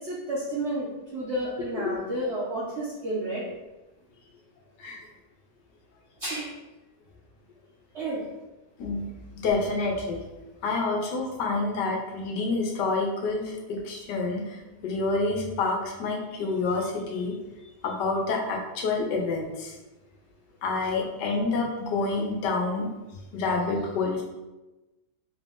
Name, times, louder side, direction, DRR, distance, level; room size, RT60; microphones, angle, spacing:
voice 1, 0.0-3.4 6.2-6.5 7.9-8.2, right 1 dB, 60° right, -5 dB, 0.7 m, -31 dB
voice 2, 9.4-10.2 10.6-14.6 14.8-17.4 17.8-19.7 20.6-22.9 23.3-24.2, left 3 dB, 85° left, 0 dB, 1.3 m, -28 dB
3.7 x 2.6 x 3.4 m, 1.1 s
omnidirectional pair, 1.8 m